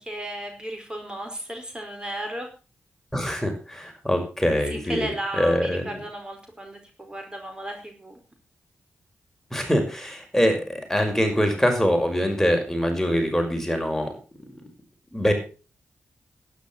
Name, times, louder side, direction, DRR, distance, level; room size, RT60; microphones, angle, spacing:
voice 1, 0.0-2.5 4.7-8.2, right 1 dB, 20° right, 3 dB, 4.9 m, -34 dB
voice 2, 3.1-6.0 9.5-14.1 15.1-15.3, equal, 5° left, 3 dB, 5.6 m, -24 dB
12.0 x 10.5 x 6.1 m, 0.36 s
cardioid pair, 50°, 5 cm